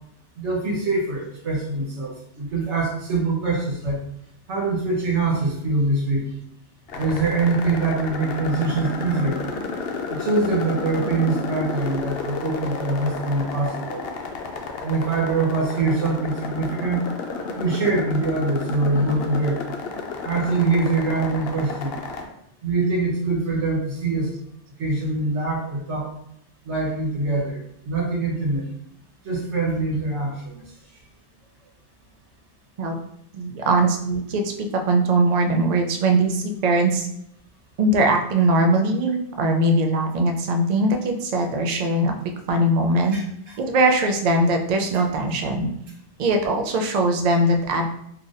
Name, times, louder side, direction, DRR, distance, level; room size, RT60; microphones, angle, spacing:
voice 1, 0.4-4.0 4.5-6.3 7.0-9.4 10.1-14.0 14.8-17.0 17.5-19.6 20.2-22.0 22.6-24.3 24.8-26.1 26.6-28.7 29.2-30.6 43.1-43.6 45.3-45.4, right 3 dB, 80° right, -3 dB, 1.3 m, -24 dB
sound 1, 6.9-22.3, left 4 dB, 65° left, 0.7 m, -32 dB
voice 2, 33.3-34.4 34.9-37.1 37.8-42.1 42.5-43.2 43.6-45.7 46.2-47.8, right 2 dB, 60° right, 3 dB, 0.4 m, -21 dB
2.8 x 2.5 x 3.9 m, 0.73 s
omnidirectional pair, 1.2 m